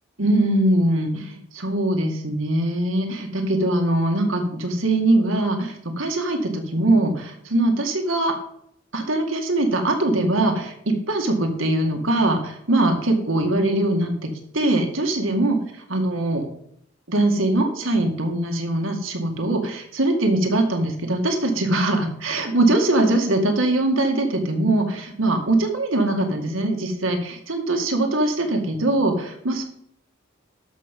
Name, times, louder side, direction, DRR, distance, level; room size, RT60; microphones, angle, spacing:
voice 1, 0.2-8.3 8.9-15.6 15.9-16.5 17.1-29.6, right 1 dB, 80° right, 4 dB, 2.0 m, -22 dB
12.5 x 6.2 x 5.3 m, 0.71 s
head